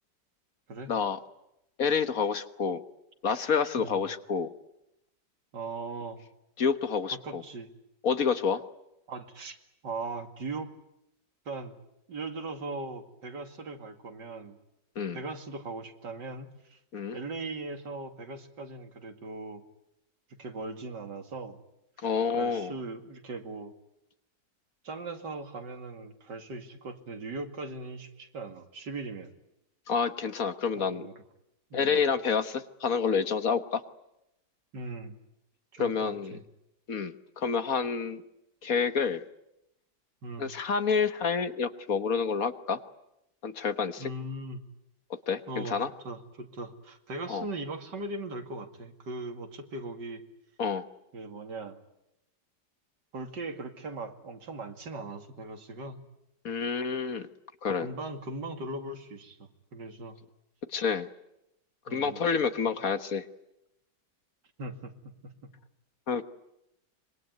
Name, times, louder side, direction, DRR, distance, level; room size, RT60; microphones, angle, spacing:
voice 1, 0.9-1.2 1.8-2.8 3.2-4.5 6.6-7.4 8.0-8.6 15.0-15.2 16.9-17.2 22.0-22.7 29.9-31.0 31.7-33.8 35.8-36.4 36.9-38.2 38.6-39.2 40.4-42.8 43.4-44.1 45.3-45.9 47.3-47.4 50.6-50.9 56.4-57.3 57.6-57.9 60.7-61.1 61.9-63.2 66.1-66.2, left 6 dB, 55° left, 11 dB, 1.6 m, -28 dB
voice 2, 5.5-6.2 7.2-7.7 9.1-9.6 9.8-10.7 11.5-11.8 12.1-14.6 15.1-16.8 17.1-19.6 20.4-21.6 22.0-22.1 22.3-23.7 24.8-29.3 30.7-31.2 31.7-32.0 34.7-35.2 35.7-36.4 40.2-40.5 44.0-44.6 45.5-50.2 51.1-51.8 53.1-56.0 57.8-60.2 61.9-62.2 64.6-64.9, right 2 dB, 75° right, 6 dB, 2.9 m, -39 dB
26.0 x 23.0 x 9.4 m, 0.85 s
omnidirectional pair, 1.9 m